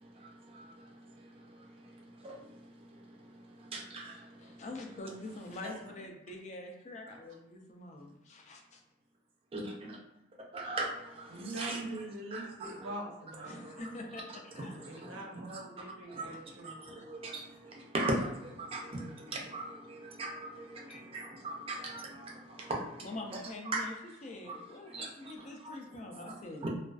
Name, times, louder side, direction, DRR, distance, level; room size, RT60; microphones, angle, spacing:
voice 1, 0.2-0.9 1.2-1.9 2.2-2.4 3.1-4.6 5.6-5.7 9.5-9.6 10.5-11.9 12.3-12.7 13.4-13.8 14.7-15.2 15.5-15.6 16.1-16.3 16.6-23.1 23.7-23.8 24.5-24.6 24.9-25.1 25.6-25.8 26.1-26.7, right 2 dB, 30° right, -1 dB, 0.4 m, -39 dB
voice 2, 4.4-8.8 13.5-15.0 20.9-21.0 23.0-24.0 24.2-26.7, left 2 dB, 35° left, 2 dB, 0.3 m, -45 dB
voice 3, 11.3-13.6 14.8-16.8, right 1 dB, 80° right, 0 dB, 0.6 m, -43 dB
2.4 x 2.2 x 2.3 m, 0.91 s
head